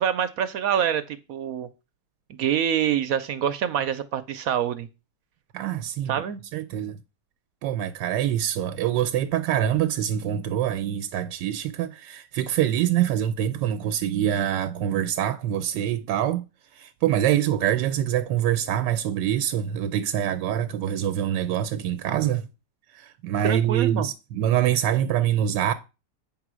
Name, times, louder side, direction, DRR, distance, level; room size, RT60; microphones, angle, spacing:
voice 1, 0.0-1.7 2.3-4.9 6.1-6.4 23.4-24.1, right 9 dB, 65° right, 0.9 m, -26 dB
voice 2, 5.5-6.1 6.5-7.0 7.6-16.4 16.7-22.5 22.9-25.7, right 11 dB, 85° right, 1.3 m, -25 dB
8.7 x 3.9 x 6.1 m
omnidirectional pair, 1.9 m